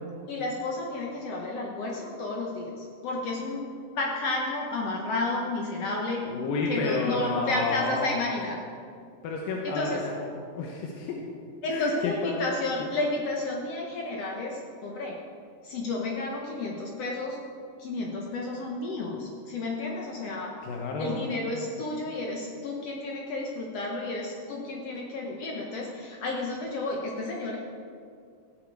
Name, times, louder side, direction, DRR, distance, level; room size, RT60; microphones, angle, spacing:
voice 1, 0.3-3.6 3.9-6.2 6.7-8.6 9.6-10.0 11.6-15.2 15.6-17.4 17.8-20.5 21.0-27.6, left 2 dB, 65° left, -1 dB, 1.7 m, -31 dB
voice 2, 6.2-8.1 9.2-10.3 10.6-11.2 11.7-12.3 20.6-21.2, left 3 dB, 90° left, -1 dB, 2.8 m, -30 dB
16.0 x 8.2 x 4.6 m, 2.3 s
omnidirectional pair, 3.9 m